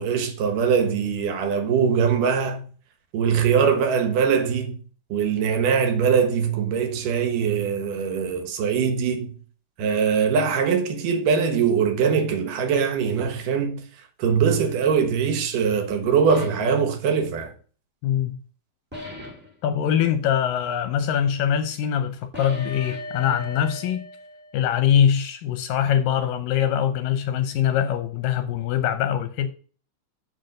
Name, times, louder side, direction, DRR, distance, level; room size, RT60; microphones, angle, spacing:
voice 1, 0.0-2.6 3.1-4.8 5.1-9.4 9.8-13.8 14.2-17.5, right 6 dB, 65° right, 2.6 m, -22 dB
sound 1, 16.3-16.7 18.9-19.5 22.3-24.8, left 1 dB, 5° right, 1.3 m, -37 dB
voice 2, 18.0-18.4 19.6-24.1 24.5-29.5, left 9 dB, 80° left, 2.1 m, -23 dB
6.4 x 6.3 x 6.4 m
omnidirectional pair, 4.5 m